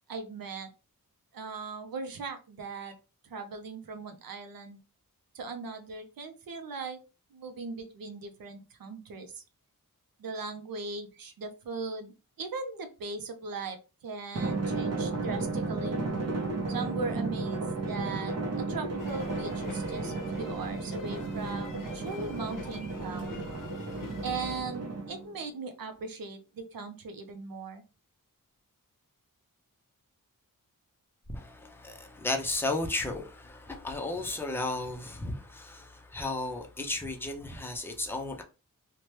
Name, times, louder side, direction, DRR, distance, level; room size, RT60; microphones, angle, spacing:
voice 1, 0.1-0.7 1.3-2.9 3.2-4.8 5.3-7.0 7.3-9.4 10.2-16.0 16.7-23.4 24.2-27.8, right 4 dB, 85° right, 0.5 m, -39 dB
Drum, 14.3-25.3, right 3 dB, 50° right, 0.7 m, -33 dB
sound 1, 19.0-24.6, left 3 dB, 65° left, 0.6 m, -44 dB
voice 2, 31.3-38.4, left 2 dB, 5° left, 0.5 m, -34 dB
2.8 x 2.2 x 3.1 m
wide cardioid pair, 95°, 34 cm